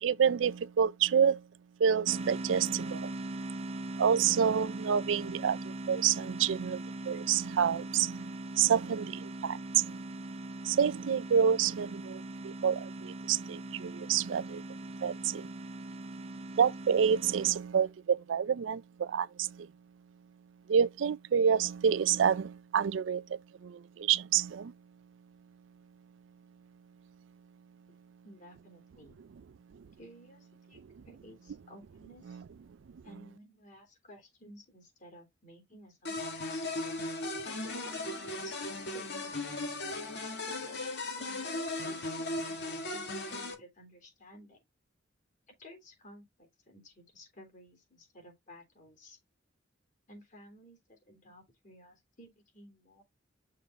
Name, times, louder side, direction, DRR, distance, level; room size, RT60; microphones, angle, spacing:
voice 1, 0.0-1.4 1.8-3.1 4.0-10.0 10.6-14.6 15.0-15.5 16.6-19.7 20.7-23.2 23.6-24.7, right 7 dB, 85° right, 0.4 m, -28 dB
sound 1, 2.1-17.5, right 2 dB, 35° right, 0.5 m, -41 dB
voice 2, 28.2-29.2 30.0-32.4 33.0-36.6 37.4-39.4 40.4-40.8 41.1-44.6 45.6-49.2 50.1-53.0, left 1 dB, 45° left, 3.4 m, -55 dB
sound 2, 36.0-43.5, left 2 dB, 65° left, 2.0 m, -37 dB
6.6 x 3.9 x 4.7 m
head